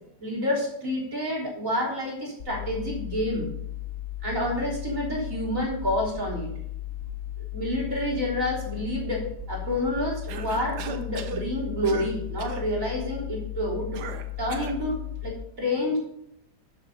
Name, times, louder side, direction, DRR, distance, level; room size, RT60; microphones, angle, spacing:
voice 1, 0.2-3.5 4.2-6.5 7.5-14.0 14.4-16.0, left 1 dB, 55° right, -3 dB, 3.9 m, -29 dB
sound 1, 2.4-15.3, left 12 dB, 65° left, 1.7 m, -36 dB
Cough, 10.3-11.4 11.8-12.1 12.4-12.7 13.9-14.8, right 5 dB, 85° right, 1.6 m, -37 dB
12.0 x 6.9 x 5.5 m, 0.74 s
omnidirectional pair, 1.7 m